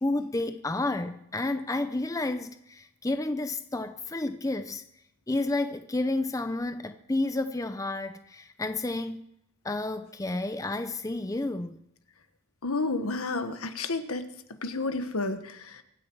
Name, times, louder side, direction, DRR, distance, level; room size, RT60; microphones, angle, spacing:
voice 1, 0.0-4.8 5.3-9.2 9.6-11.7, left 2 dB, 15° left, 0.5 m, -30 dB
voice 2, 12.6-14.2 14.6-15.8, left 3 dB, 80° left, 1.4 m, -31 dB
24.0 x 9.6 x 4.7 m
head